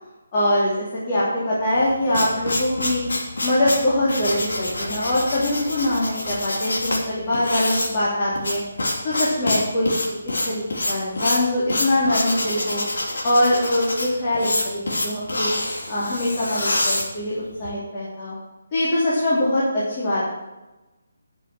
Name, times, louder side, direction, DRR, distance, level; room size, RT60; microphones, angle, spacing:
voice 1, 0.3-3.0 3.4-8.6 9.0-12.8 13.2-15.5 15.9-18.3 18.7-20.2, left 1 dB, 30° left, -8 dB, 3.1 m, -23 dB
sound 1, 1.7-17.7, left 1 dB, 80° left, 3.0 m, -26 dB
11.0 x 6.9 x 6.2 m, 1.1 s
hypercardioid pair, 165°, 0 cm